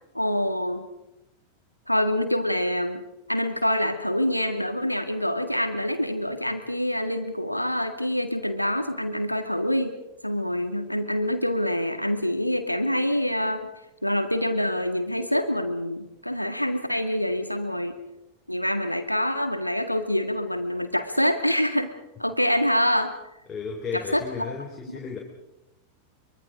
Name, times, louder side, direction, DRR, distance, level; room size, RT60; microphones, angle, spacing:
voice 1, 0.1-0.9 1.9-3.0 3.3-10.0 10.2-13.7 14.0-18.0 18.5-21.9 22.2-23.1 23.9-24.5 24.9-25.0, equal, 90° left, 8 dB, 1.9 m, -26 dB
voice 2, 23.5-25.2, left 5 dB, 20° left, 0 dB, 3.6 m, -34 dB
24.0 x 23.5 x 5.1 m, 0.91 s
figure-of-eight pair, 90°, 0 cm